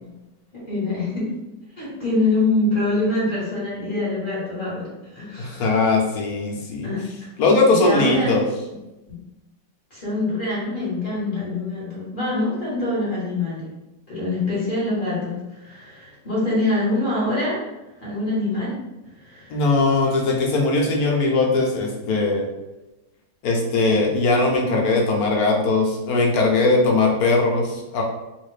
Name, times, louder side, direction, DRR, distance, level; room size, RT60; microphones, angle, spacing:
voice 1, 0.5-1.3 1.8-5.7 6.8-7.3 7.7-8.3 9.1-9.2 9.9-13.7 14.1-17.6 18.0-18.8 19.2-19.6, left 2 dB, 30° left, -8 dB, 1.3 m, -25 dB
voice 2, 5.4-6.9 7.4-8.4 19.5-22.5 23.4-28.0, left 3 dB, 65° left, 0 dB, 1.0 m, -20 dB
3.7 x 2.5 x 3.2 m, 1.0 s
omnidirectional pair, 2.0 m